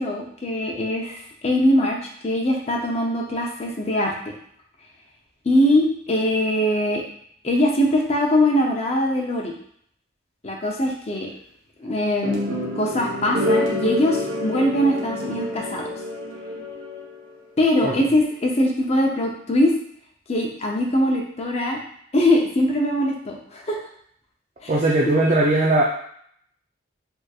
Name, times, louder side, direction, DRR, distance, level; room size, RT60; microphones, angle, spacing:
voice 1, 0.0-4.3 5.4-7.0 7.4-9.5 10.4-11.3 11.8-12.4 12.8-15.8 17.6-19.7 20.3-21.8 22.1-23.8 24.6-24.7 25.0-25.1, left 1 dB, 35° left, -1 dB, 0.6 m, -22 dB
sound 1, 12.2-17.3, left 1 dB, 80° right, 0.9 m, -27 dB
voice 2, 24.7-25.9, right 2 dB, 35° right, -3 dB, 0.4 m, -19 dB
3.4 x 3.0 x 2.3 m, 0.66 s
head